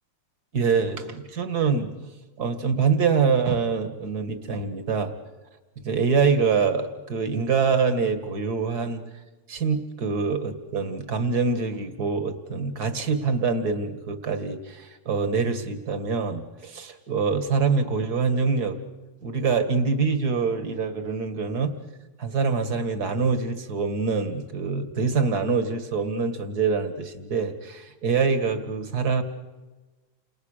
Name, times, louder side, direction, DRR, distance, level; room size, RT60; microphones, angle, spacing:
voice 1, 0.5-1.9 2.4-5.1 5.8-9.0 9.5-18.8 19.2-21.7 22.2-29.2, right 5 dB, 35° right, 8 dB, 2.3 m, -25 dB
30.0 x 28.5 x 6.8 m, 1.2 s
omnidirectional pair, 3.3 m